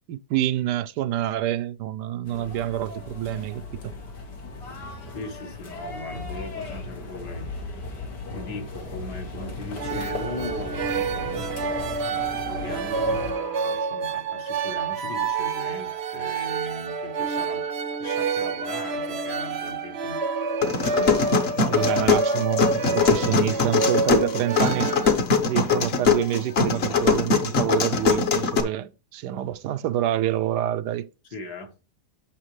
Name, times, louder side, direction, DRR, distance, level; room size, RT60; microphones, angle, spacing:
voice 1, 0.1-3.9 21.6-25.0 25.4-31.1, right 12 dB, 80° right, 1.2 m, -27 dB
sound 1, 2.2-13.3, left 3 dB, 85° left, 2.4 m, -36 dB
voice 2, 5.1-7.7 8.3-11.5 12.5-17.6 18.0-20.2 31.3-31.7, left 2 dB, 70° left, 2.0 m, -38 dB
sound 2, 9.8-25.1, right 4 dB, 60° right, 0.7 m, -28 dB
sound 3, 20.6-28.6, left 5 dB, 45° left, 1.0 m, -22 dB
8.9 x 6.3 x 3.1 m
omnidirectional pair, 1.8 m